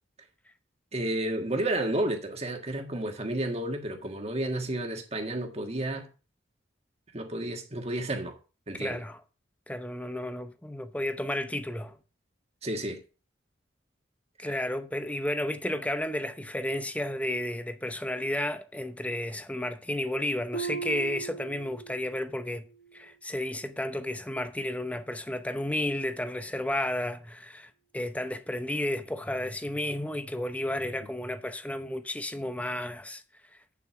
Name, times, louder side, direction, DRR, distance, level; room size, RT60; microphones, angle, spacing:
voice 1, 0.9-6.1 7.1-8.4 8.7-9.0 12.6-13.0 14.5-14.6, right 1 dB, 35° right, 1.6 m, -31 dB
voice 2, 8.8-9.2 9.7-12.0 14.4-22.7 22.9-33.2, left 1 dB, 5° left, 0.7 m, -32 dB
Harp, 20.5-22.3 22.6-23.1 23.6-23.7, right 5 dB, 65° left, 1.4 m, -37 dB
8.4 x 7.1 x 4.7 m
head